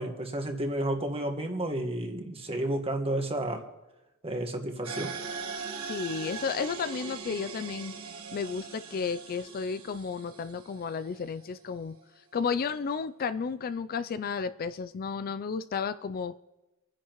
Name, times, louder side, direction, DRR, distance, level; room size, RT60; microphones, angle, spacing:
voice 1, 0.0-3.7 4.2-5.1, right 1 dB, 25° right, 4 dB, 1.5 m, -31 dB
sound 1, 4.8-11.4, right 5 dB, 75° right, 1.5 m, -40 dB
voice 2, 5.8-7.9 8.3-12.0 12.3-16.4, left 5 dB, 45° left, 12 dB, 0.4 m, -33 dB
27.0 x 10.5 x 3.0 m, 1.0 s
head